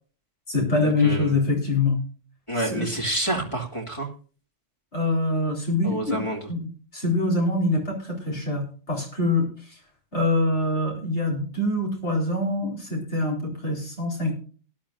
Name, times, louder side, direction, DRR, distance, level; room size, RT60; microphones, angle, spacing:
voice 1, 0.5-2.0 2.5-2.9 4.9-6.2 6.5-9.8 10.1-14.4, left 2 dB, 60° left, 0 dB, 4.5 m, -25 dB
voice 2, 1.0-1.4 2.5-4.1 5.8-6.4, right 1 dB, 25° left, 0 dB, 2.5 m, -28 dB
18.5 x 11.5 x 2.6 m, 0.39 s
omnidirectional pair, 1.3 m